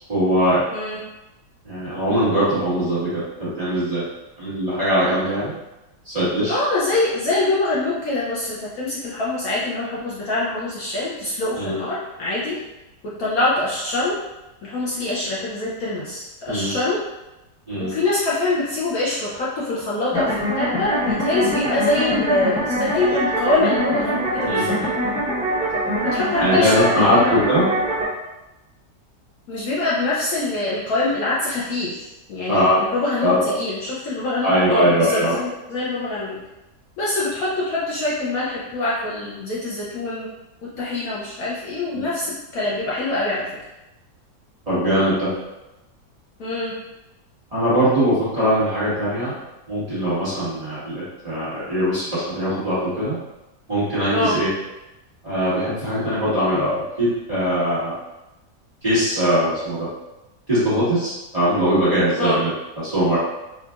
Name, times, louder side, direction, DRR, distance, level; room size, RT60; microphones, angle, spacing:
voice 1, 0.1-0.6 1.6-4.0 4.4-5.5 6.0-6.6 11.6-11.8 16.5-16.8 17.7-17.9 24.4-24.9 26.4-27.6 32.5-32.8 33.2-33.5 34.4-35.4 41.9-42.0 44.7-45.3 47.5-49.3 49.7-53.2 53.7-54.5 55.2-57.9 58.8-59.9 60.5-63.2, equal, 25° right, -13 dB, 1.3 m, -21 dB
voice 2, 6.5-12.6 13.2-14.1 14.6-17.0 17.8-24.8 26.0-27.4 29.5-36.4 37.0-40.3 40.8-43.5 46.4-46.7 54.1-54.4 62.2-62.4, left 2 dB, 65° left, -7 dB, 1.0 m, -24 dB
sound 1, 20.1-28.1, equal, 5° right, 0.6 m, -23 dB
4.3 x 2.5 x 2.3 m, 0.98 s
omnidirectional pair, 1.9 m